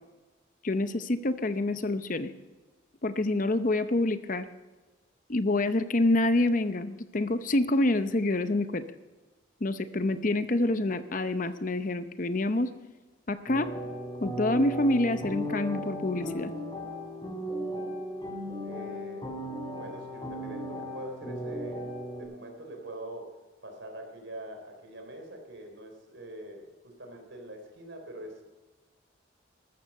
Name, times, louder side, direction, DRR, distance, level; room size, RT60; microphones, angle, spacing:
voice 1, 0.6-2.3 3.0-4.5 5.3-8.9 9.6-12.7 13.3-13.7 14.2-16.5, left 2 dB, 40° left, 11 dB, 0.7 m, -27 dB
sound 1, 13.5-22.2, equal, 25° left, 3.4 m, -36 dB
voice 2, 18.6-19.3 19.7-21.9 22.2-23.3 23.6-28.4, right 1 dB, 70° right, 3 dB, 3.7 m, -44 dB
13.5 x 13.0 x 5.4 m, 1.2 s
head